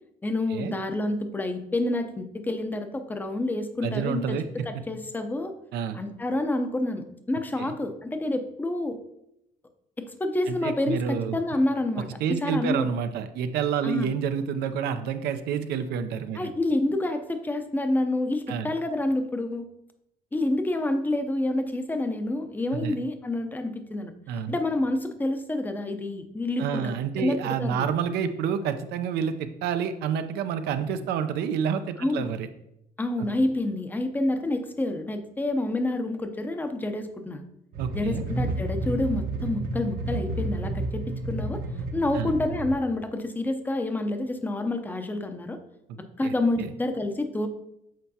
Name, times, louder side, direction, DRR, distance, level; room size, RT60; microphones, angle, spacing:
voice 1, 0.2-5.5 5.9-9.0 10.0-12.1 12.4-12.9 13.8-14.1 16.4-19.6 20.3-27.9 32.0-32.3 33.0-37.4 37.9-41.6 41.9-45.6 46.2-47.5, left 2 dB, 10° left, 7 dB, 0.6 m, -28 dB
voice 2, 3.8-4.7 5.7-6.0 7.6-7.7 10.5-11.4 12.2-16.5 18.5-18.7 22.8-23.0 24.3-24.6 26.6-32.5 37.8-38.2 42.1-42.3 45.9-46.0 46.2-46.3, right 7 dB, 75° right, 9 dB, 0.5 m, -29 dB
sound 1, 37.7-42.8, right 2 dB, 60° right, 0.9 m, -31 dB
7.6 x 4.5 x 2.8 m, 0.81 s
cardioid pair, 110°, 17 cm